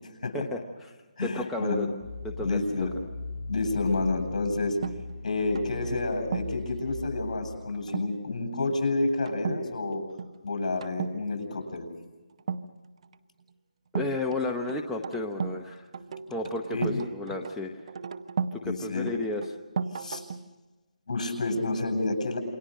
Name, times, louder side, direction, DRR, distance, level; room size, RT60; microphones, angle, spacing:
voice 1, 0.3-0.9 1.2-1.9 2.2-2.6 13.9-15.8 16.3-17.7 18.5-19.4, left 2 dB, 5° left, 0 dB, 0.9 m, -32 dB
voice 2, 1.2-1.9 2.4-2.9 3.5-4.8 5.2-10.0 10.4-11.9 16.7-17.0 18.6-19.1 19.9-20.2 21.1-22.4, left 3 dB, 60° left, 4 dB, 7.8 m, -29 dB
sound 1, 2.0-7.6, left 3 dB, 30° left, 3.8 m, -39 dB
sound 2, 4.8-6.7 7.9-8.2 8.5-8.8 9.3-9.6 9.9-10.3 10.8-11.2 12.4-13.1 14.0-15.6 15.9-18.6 19.1-20.5, right 5 dB, 50° right, 1.1 m, -35 dB
28.5 x 24.0 x 6.6 m, 1.2 s
hypercardioid pair, 160°, 4 cm